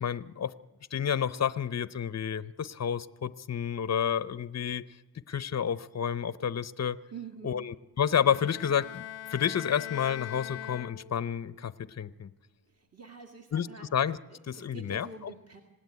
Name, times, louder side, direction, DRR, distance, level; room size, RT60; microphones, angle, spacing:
voice 1, 0.0-0.5 0.9-4.9 5.3-7.0 7.4-9.0 9.3-12.3 13.5-13.7 13.9-14.2 14.5-15.1, left 8 dB, 35° left, 16 dB, 0.7 m, -30 dB
voice 2, 7.1-7.7 12.7-13.9 14.3-15.6, right 5 dB, 35° right, 2 dB, 2.1 m, -46 dB
Bowed string instrument, 8.2-11.4, left 12 dB, 90° left, 0.7 m, -41 dB
25.5 x 17.0 x 9.6 m, 1.2 s
wide cardioid pair, 90°, 44 cm